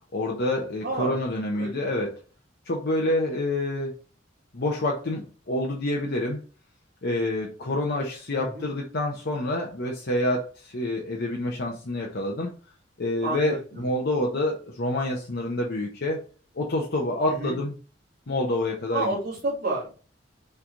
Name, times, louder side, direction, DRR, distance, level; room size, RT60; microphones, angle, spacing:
voice 1, 0.1-2.1 2.7-3.9 4.5-5.2 5.5-6.4 7.0-12.5 13.0-16.2 16.5-17.8 18.3-19.1, left 1 dB, 60° left, -1 dB, 0.8 m, -27 dB
voice 2, 0.8-1.1 1.5-1.8 8.3-8.7 13.2-13.8 17.3-17.6 18.9-19.9, right 2 dB, 55° right, -11 dB, 2.5 m, -30 dB
5.9 x 3.3 x 2.6 m, 0.37 s
head